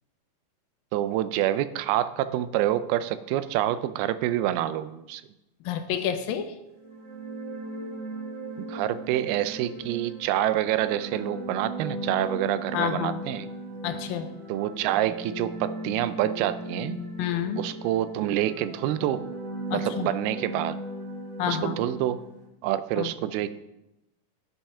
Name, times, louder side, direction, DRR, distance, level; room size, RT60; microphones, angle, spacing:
voice 1, 0.9-5.2 8.6-13.5 14.5-17.0 17.6-19.2 19.7-20.8 21.5-22.2 22.6-23.5, right 12 dB, 85° right, 13 dB, 2.4 m, -27 dB
voice 2, 5.7-6.5 12.7-13.2 13.8-14.3 17.2-17.6 19.7-20.1 21.4-21.8 23.0-23.1, left 8 dB, 80° left, 8 dB, 2.2 m, -29 dB
sound 1, 6.7-22.5, right 1 dB, 50° right, 2.1 m, -37 dB
10.5 x 7.3 x 5.5 m, 0.93 s
omnidirectional pair, 4.4 m